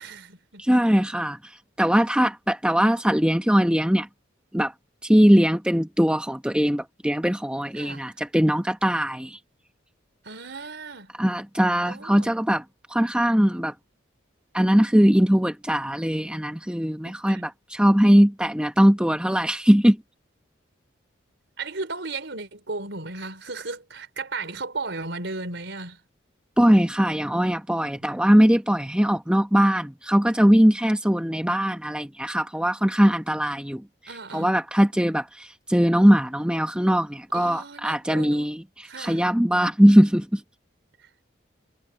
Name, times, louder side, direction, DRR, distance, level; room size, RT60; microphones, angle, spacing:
voice 1, 0.0-0.6 7.7-8.1 10.2-11.1 11.8-12.3 17.1-17.5 21.6-26.0 34.1-34.6 37.3-38.5 38.8-39.2, right 3 dB, 65° right, 4.2 m, -35 dB
voice 2, 0.6-4.1 4.5-4.7 5.0-9.4 11.2-12.6 12.9-13.7 14.5-20.0 26.6-33.8 34.3-40.4, equal, 5° right, 1.0 m, -20 dB
head